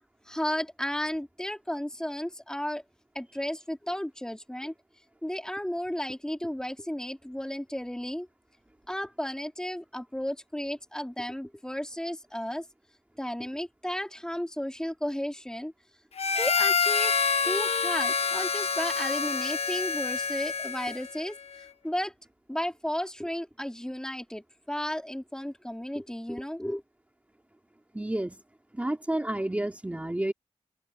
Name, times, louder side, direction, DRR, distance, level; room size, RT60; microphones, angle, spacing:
voice 1, 0.3-2.8 3.2-4.7 5.2-8.3 8.9-12.7 13.2-15.7 16.4-17.1 17.4-21.4 21.8-22.1 22.5-26.8, equal, 5° left, 3.7 m, -33 dB
Harmonica, 16.2-21.2, left 5 dB, 65° left, 1.0 m, -27 dB
voice 2, 27.9-28.4 28.7-30.3, right 1 dB, 10° right, 2.5 m, -30 dB
wide cardioid pair, 90°, 11 cm